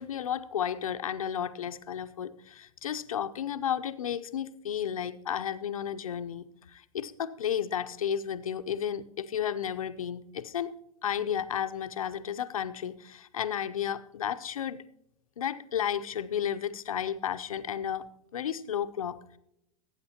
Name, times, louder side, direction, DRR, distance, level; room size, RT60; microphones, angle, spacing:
voice 1, 0.0-10.7 11.0-14.8 15.4-18.1 18.3-19.4, left 9 dB, 85° left, 11 dB, 0.7 m, -33 dB
18.5 x 8.8 x 2.9 m, 0.80 s
hypercardioid pair, 105°, 17 cm